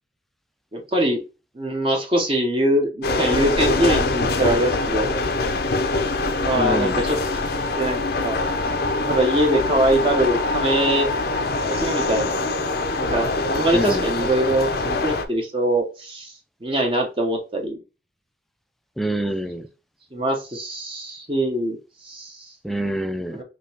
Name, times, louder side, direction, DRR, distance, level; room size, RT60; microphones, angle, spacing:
voice 1, 0.7-1.2 1.5-5.2 6.4-8.4 9.1-11.1 11.7-12.3 13.0-16.3 16.6-17.8 20.1-21.8 22.0-22.5 23.3-23.4, right 1 dB, 30° right, 0.8 m, -23 dB
sound 1, 3.0-15.3, left 2 dB, 60° left, 0.6 m, -24 dB
voice 2, 6.6-7.0 13.7-14.1 19.0-19.7 22.6-23.4, right 1 dB, ahead, 0.4 m, -26 dB
5.0 x 2.9 x 2.8 m
head